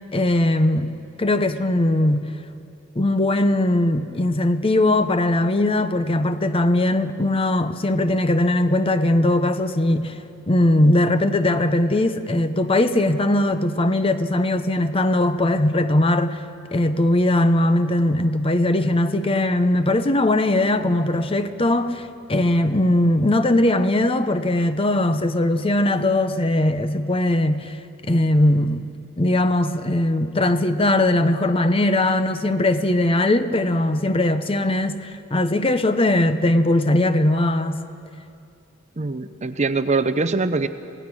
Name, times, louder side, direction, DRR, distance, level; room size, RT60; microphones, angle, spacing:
voice 1, 0.1-2.3 3.0-10.2 10.5-16.4 16.7-27.8 28.0-37.8, left 1 dB, 25° left, 0.8 m, -20 dB
voice 2, 39.0-40.7, right 3 dB, 35° right, 0.7 m, -22 dB
26.5 x 17.5 x 6.3 m
head